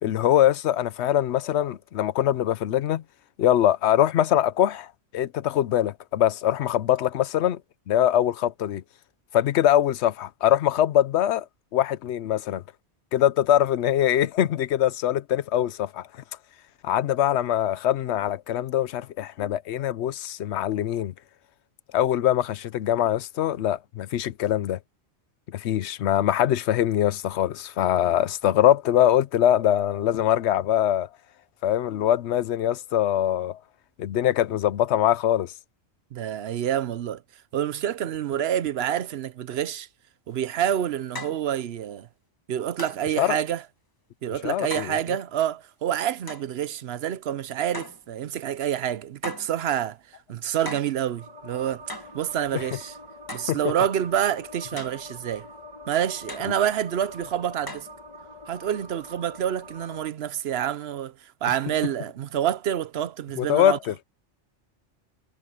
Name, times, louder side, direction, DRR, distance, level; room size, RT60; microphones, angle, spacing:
voice 1, 0.0-3.0 3.4-4.9 5.1-7.6 7.9-8.8 9.3-11.5 11.7-12.6 13.1-16.1 16.8-21.1 21.9-24.8 25.5-31.1 31.6-33.6 34.0-35.5 43.2-43.4 44.4-45.0 52.5-52.6 53.5-53.6 63.4-63.9, left 11 dB, 75° left, 0.9 m, -23 dB
voice 2, 36.1-37.2 37.5-39.9 40.3-42.1 42.5-43.6 44.2-50.0 50.3-51.8 52.1-52.9 53.3-55.5 55.9-57.9 58.5-61.1 61.4-63.8, right 10 dB, 65° right, 0.9 m, -27 dB
sound 1, 40.3-40.4 41.2-41.5 42.8-43.1 44.7-45.0 46.3-46.5 47.7-48.1 49.2-49.6 50.7-51.0 51.9-52.2 53.3-53.6 54.8-55.1 56.3-56.5 57.7-57.9, left 1 dB, 20° left, 1.4 m, -37 dB
sound 2, 51.2-60.1, left 1 dB, 35° right, 3.1 m, -44 dB
omnidirectional pair, 1.2 m